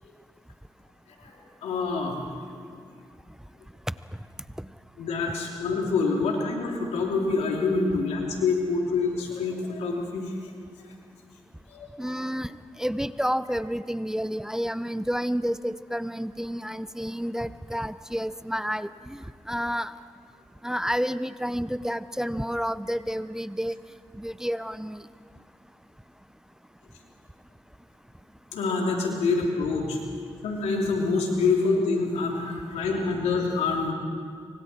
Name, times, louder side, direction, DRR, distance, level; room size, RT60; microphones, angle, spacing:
voice 1, 1.2-2.2 2.5-2.7 5.0-10.3 11.7-12.1 28.5-30.0 30.4-33.9, left 4 dB, 90° left, 0 dB, 3.3 m, -26 dB
voice 2, 12.0-12.5 12.8-19.9 20.6-23.7 24.1-25.0, equal, 5° right, 14 dB, 0.6 m, -30 dB
25.5 x 24.5 x 4.5 m, 2.2 s
supercardioid pair, 55°, 11 cm